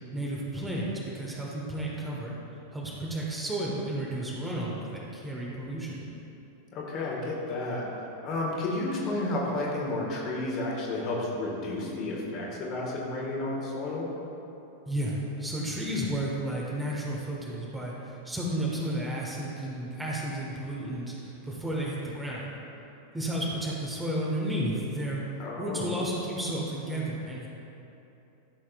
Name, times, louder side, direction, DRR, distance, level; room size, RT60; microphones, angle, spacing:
voice 1, 0.1-2.4 2.7-6.1 14.9-22.5 23.1-25.2 25.6-27.5, right 1 dB, 10° right, -4 dB, 1.3 m, -32 dB
voice 2, 6.7-7.8 8.2-14.1 25.4-26.0, left 2 dB, 35° left, -3 dB, 1.7 m, -31 dB
13.5 x 6.4 x 2.4 m, 2.9 s
figure-of-eight pair, 90°, 0 cm